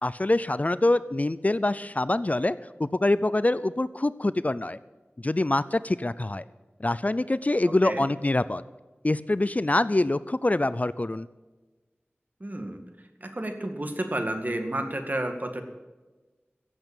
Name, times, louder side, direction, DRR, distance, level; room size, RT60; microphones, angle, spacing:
voice 1, 0.0-4.8 5.2-6.4 6.8-8.6 9.0-11.3, left 2 dB, 35° left, 16 dB, 0.4 m, -25 dB
voice 2, 12.4-12.8 13.2-15.6, right 1 dB, 45° right, 6 dB, 2.0 m, -31 dB
16.0 x 8.1 x 8.9 m, 1.2 s
wide cardioid pair, 55°, 4 cm